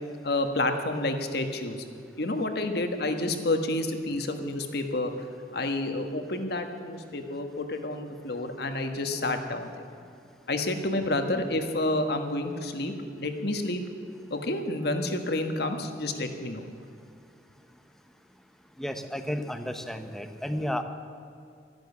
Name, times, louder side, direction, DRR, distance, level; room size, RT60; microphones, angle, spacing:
voice 1, 0.2-1.8 2.2-5.1 5.5-9.9 10.5-13.8 14.3-16.7, left 2 dB, 60° left, 6 dB, 1.4 m, -29 dB
voice 2, 18.8-20.8, equal, ahead, 7 dB, 0.9 m, -32 dB
13.0 x 10.5 x 8.4 m, 2.5 s
head